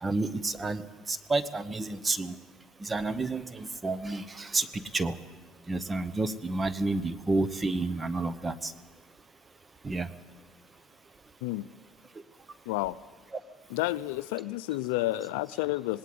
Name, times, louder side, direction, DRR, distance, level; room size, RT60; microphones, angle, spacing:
voice 1, 0.0-2.4 2.8-5.1 5.7-8.7 9.8-10.1, right 3 dB, 20° right, 14 dB, 0.9 m, -30 dB
voice 2, 13.7-16.0, left 18 dB, 85° left, 16 dB, 0.5 m, -30 dB
19.5 x 18.0 x 7.8 m, 1.3 s
supercardioid pair, 95°, 0 cm